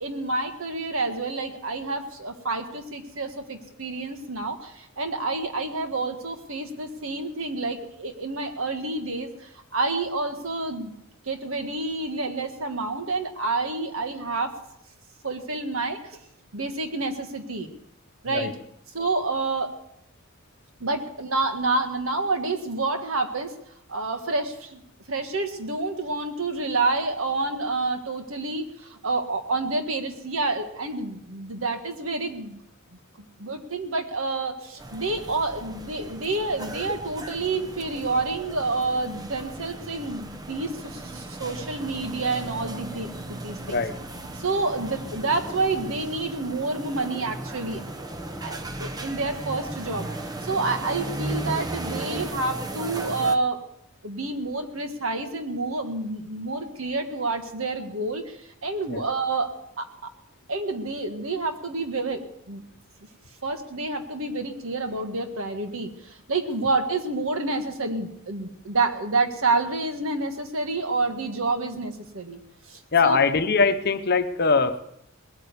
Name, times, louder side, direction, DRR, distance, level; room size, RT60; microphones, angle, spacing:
voice 1, 0.0-11.0 11.3-14.5 15.2-16.2 16.5-17.7 18.2-18.5 18.9-19.7 20.8-23.5 23.9-24.8 25.1-32.6 33.4-43.8 44.3-47.8 48.4-50.1 50.4-53.6 54.0-60.1 60.5-62.6 63.4-72.4 72.7-73.2, right 3 dB, 75° right, 6 dB, 1.8 m, -28 dB
sound 1, 34.8-53.3, right 1 dB, 20° right, 0.9 m, -36 dB
voice 2, 72.9-74.8, left 4 dB, 50° left, 9 dB, 0.9 m, -22 dB
19.5 x 9.2 x 6.9 m, 0.78 s
head